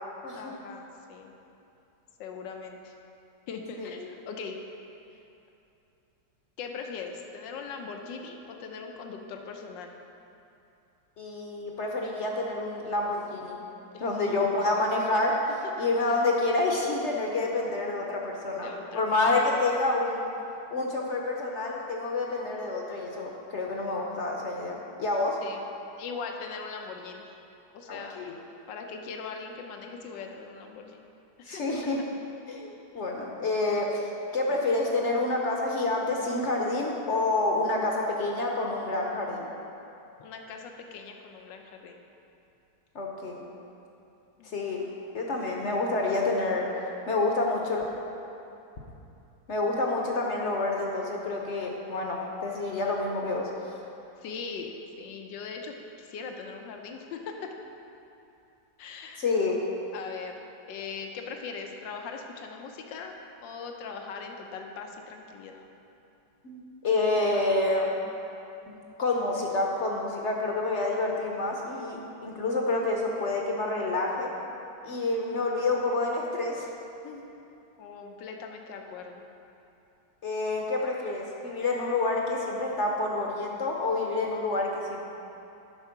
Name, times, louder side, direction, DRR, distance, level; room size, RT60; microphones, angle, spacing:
voice 1, 0.3-0.8 1.1-1.3 2.2-2.9 3.5-4.5 6.6-9.9 13.9-14.0 18.5-19.0 25.4-25.7 26.0-27.2 27.7-28.2 28.7-31.1 31.5-31.6 40.2-42.0 44.4-44.5 54.2-54.7 55.0-57.5 58.8-59.2 59.9-60.3 60.7-63.1 63.4-65.6 74.9-75.1 77.8-79.2, left 5 dB, 90° left, 3 dB, 1.4 m, -40 dB
voice 2, 11.2-13.6 14.0-15.4 15.8-20.3 20.7-25.4 27.9-28.3 31.4-32.0 32.5-39.5 42.9-43.4 44.5-44.9 45.1-46.7 47.1-47.8 49.5-53.5 59.2-59.6 66.4-67.9 68.7-74.3 74.8-76.7 77.0-77.2 80.2-85.0, left 2 dB, 55° left, 0 dB, 0.8 m, -28 dB
10.5 x 4.5 x 5.7 m, 2.8 s
omnidirectional pair, 1.9 m